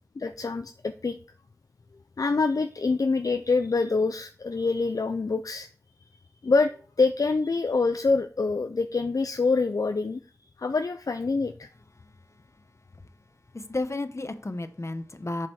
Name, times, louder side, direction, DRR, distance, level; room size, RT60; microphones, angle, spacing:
voice 1, 0.2-1.2 2.2-5.7 6.0-6.1 6.4-6.7 7.0-10.2 10.6-11.7, left 4 dB, 65° left, 0.4 m, -25 dB
voice 2, 13.5-15.5, left 2 dB, 50° left, 0.9 m, -32 dB
7.6 x 5.0 x 4.7 m
wide cardioid pair, 45°, 6 cm